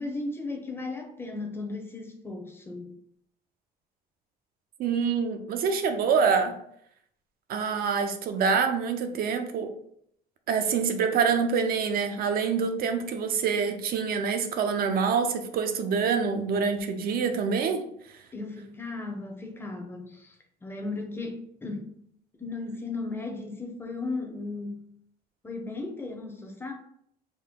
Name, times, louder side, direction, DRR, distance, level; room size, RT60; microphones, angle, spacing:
voice 1, 0.0-3.0 18.3-20.4 20.6-21.9 22.4-24.9 25.4-26.7, left 3 dB, 15° left, 3 dB, 0.7 m, -36 dB
voice 2, 4.8-6.6 7.5-9.7 10.5-17.8, right 6 dB, 60° right, 6 dB, 0.5 m, -26 dB
3.7 x 2.1 x 3.7 m, 0.70 s
cardioid pair, 110°, 17 cm